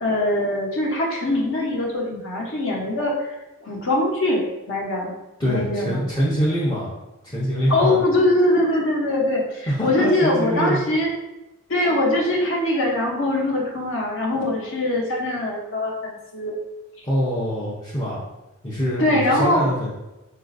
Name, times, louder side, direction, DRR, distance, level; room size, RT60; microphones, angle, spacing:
voice 1, 0.0-3.4 3.6-5.1 5.4-6.0 7.7-11.1 11.7-16.5 19.0-19.6, left 1 dB, 60° left, -1 dB, 0.7 m, -22 dB
voice 2, 5.4-6.9 7.2-8.0 9.7-10.8 17.0-18.2 18.6-19.9, equal, 20° left, -8 dB, 0.5 m, -24 dB
3.9 x 2.4 x 2.5 m, 0.99 s
head